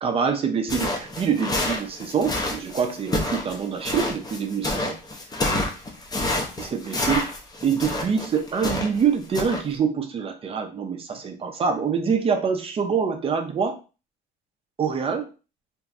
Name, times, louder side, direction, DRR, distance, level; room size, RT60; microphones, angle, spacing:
voice 1, 0.0-5.0 5.5-5.7 6.6-7.3 7.6-13.8 14.8-15.3, right 6 dB, 30° right, 5 dB, 0.5 m, -25 dB
sound 1, 0.7-9.0 9.3-9.6, left 2 dB, 20° left, 0.6 m, -28 dB
2.9 x 2.6 x 2.4 m, 0.33 s
cardioid pair, 120°, 20 cm